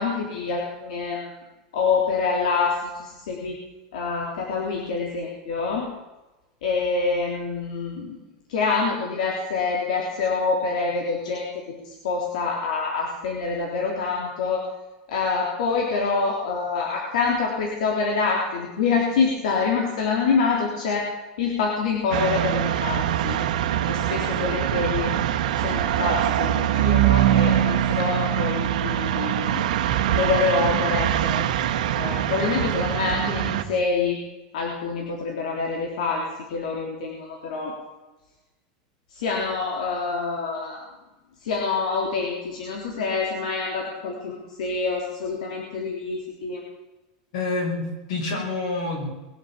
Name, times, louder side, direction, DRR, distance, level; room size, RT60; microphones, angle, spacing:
voice 1, 0.0-1.4 1.7-3.6 3.9-5.9 6.6-8.2 8.5-11.5 11.8-14.6 15.1-21.1 21.4-23.4 23.9-25.2 25.6-29.7 30.1-31.4 32.0-34.2 34.5-36.2 36.5-37.7 39.1-40.8 41.4-46.6, left 4 dB, 80° left, -1 dB, 3.6 m, -26 dB
sound 1, 22.1-33.6, right 11 dB, 85° right, 1.5 m, -23 dB
voice 2, 47.3-49.1, left 3 dB, 60° left, 1 dB, 6.2 m, -27 dB
22.0 x 8.8 x 7.6 m, 1.1 s
supercardioid pair, 175°, 4 cm